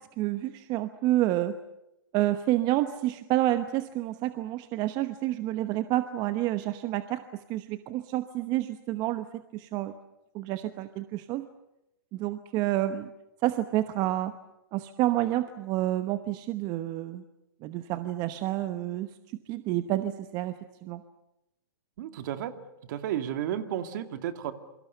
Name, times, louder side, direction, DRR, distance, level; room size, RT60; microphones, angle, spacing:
voice 1, 0.2-1.6 2.1-9.9 10.3-11.5 12.1-13.1 13.4-14.3 14.7-17.2 17.6-19.1 19.5-20.5 20.8-21.0, right 15 dB, 35° right, 10 dB, 1.0 m, -29 dB
voice 2, 22.0-22.5 22.9-24.5, right 10 dB, 55° right, 8 dB, 2.3 m, -32 dB
27.5 x 24.5 x 6.8 m, 0.89 s
hypercardioid pair, 140°, 12 cm